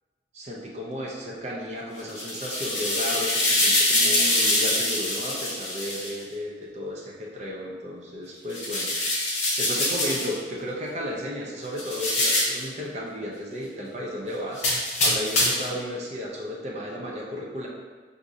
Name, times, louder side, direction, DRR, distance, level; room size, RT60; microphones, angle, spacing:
voice 1, 0.3-17.7, left 1 dB, 40° right, -3 dB, 0.6 m, -34 dB
sound 1, 2.0-6.1 8.5-10.3 11.8-12.6 14.6-15.7, left 1 dB, 40° left, 1.1 m, -24 dB
5.9 x 2.6 x 2.6 m, 1.5 s
head